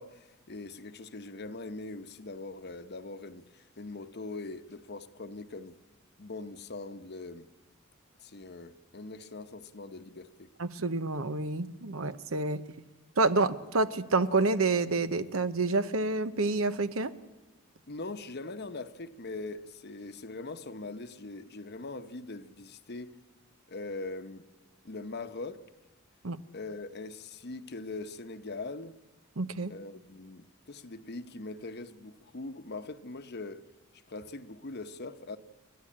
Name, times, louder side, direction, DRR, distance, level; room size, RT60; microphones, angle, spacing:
voice 1, 0.0-5.8 6.2-7.5 8.2-10.5 17.9-23.2 23.7-24.5 24.8-25.6 26.5-29.0 29.7-33.6 34.1-35.4, left 3 dB, 50° left, 1.0 m, -41 dB
voice 2, 10.6-12.6 13.2-17.1 26.2-26.4 29.4-29.7, right 3 dB, 70° right, 0.9 m, -28 dB
29.5 x 11.5 x 8.7 m
head